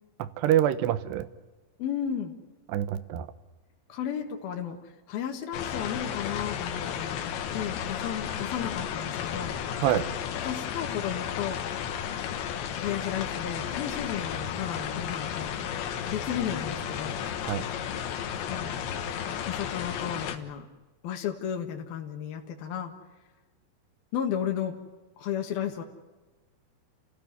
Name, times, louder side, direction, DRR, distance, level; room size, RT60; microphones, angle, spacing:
voice 1, 0.2-1.3 2.7-3.3 9.8-10.1 17.5-17.6, right 11 dB, 80° right, 14 dB, 3.1 m, -26 dB
voice 2, 1.8-2.3 3.9-7.2 7.5-9.6 10.4-11.6 12.8-15.6 16.1-17.2 18.5-18.8 19.5-20.7 21.0-22.9 24.1-24.8 25.2-25.8, left 9 dB, 65° left, 2 dB, 3.3 m, -33 dB
sound 1, 5.5-20.4, left 8 dB, 90° left, 3.8 m, -33 dB
30.0 x 16.0 x 9.6 m, 1.2 s
omnidirectional pair, 5.0 m